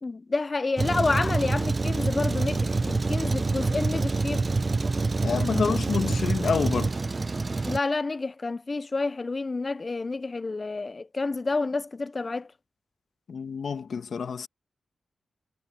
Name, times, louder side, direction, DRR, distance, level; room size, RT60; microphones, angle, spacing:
voice 1, 0.0-4.5 7.6-12.5, left 3 dB, 30° left, 0.5 m, -29 dB
Truck, 0.8-7.8, right 3 dB, 30° right, 0.6 m, -26 dB
voice 2, 5.2-6.9 13.3-14.5, left 6 dB, 65° left, 1.8 m, -28 dB
wide cardioid pair, 125°, 0 cm